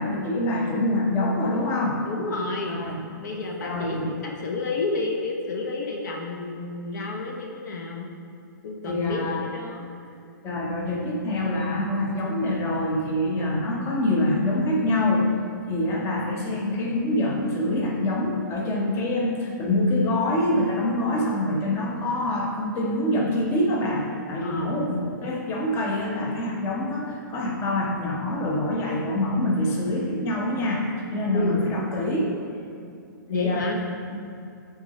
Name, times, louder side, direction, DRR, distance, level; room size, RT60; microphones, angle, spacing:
voice 1, 0.0-2.0 2.7-3.0 3.6-4.1 8.9-9.5 10.4-15.3 15.7-32.3 33.3-33.7 34.1-34.2, left 1 dB, 25° left, -1 dB, 0.8 m, -25 dB
voice 2, 2.1-2.8 3.2-8.1 8.6-9.9 24.4-24.8 31.3-31.6 33.3-33.8, left 3 dB, 60° left, 1 dB, 0.7 m, -30 dB
6.1 x 3.7 x 4.2 m, 2.6 s
hypercardioid pair, 140°, 11 cm